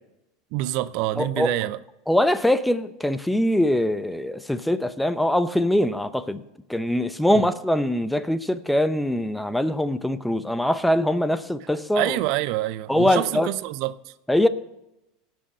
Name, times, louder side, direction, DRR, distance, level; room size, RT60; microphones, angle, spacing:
voice 1, 0.5-1.8 11.9-14.1, right 15 dB, 60° right, 0.5 m, -26 dB
voice 2, 1.2-1.5 2.1-6.4 6.7-12.2 12.9-13.5 14.3-14.5, left 1 dB, 5° left, 0.7 m, -22 dB
18.0 x 6.2 x 5.5 m
supercardioid pair, 110°, 0 cm